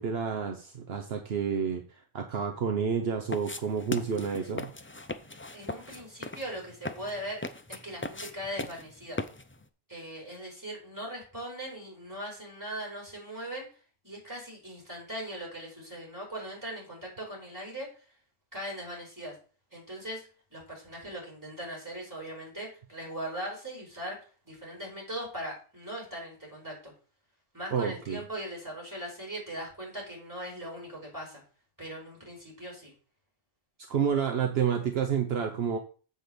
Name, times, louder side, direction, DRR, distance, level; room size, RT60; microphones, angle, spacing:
voice 1, 0.0-4.7 27.7-28.2 33.9-35.8, right 7 dB, 70° right, 5 dB, 1.1 m, -29 dB
sound 1, 3.3-9.6, left 2 dB, 20° left, 0.3 m, -39 dB
voice 2, 5.5-7.4 7.7-9.2 9.9-13.7 14.0-18.0 18.5-19.4 19.7-24.2 24.4-26.9 27.5-31.4 31.8-32.9, right 1 dB, 15° right, -4 dB, 4.7 m, -40 dB
7.8 x 4.3 x 6.8 m, 0.38 s
omnidirectional pair, 1.1 m